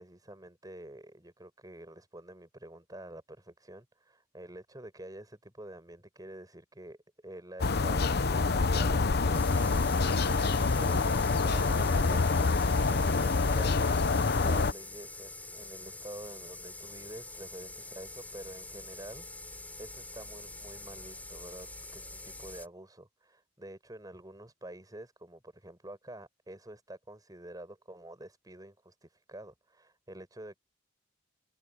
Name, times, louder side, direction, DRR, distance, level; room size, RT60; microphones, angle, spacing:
voice 1, 0.0-19.3 19.8-30.6, right 1 dB, 20° right, 5.1 m, -48 dB
sound 1, 7.6-14.7, left 4 dB, 55° left, 0.8 m, -26 dB
sound 2, 9.3-22.7, left 2 dB, 10° left, 5.0 m, -45 dB
head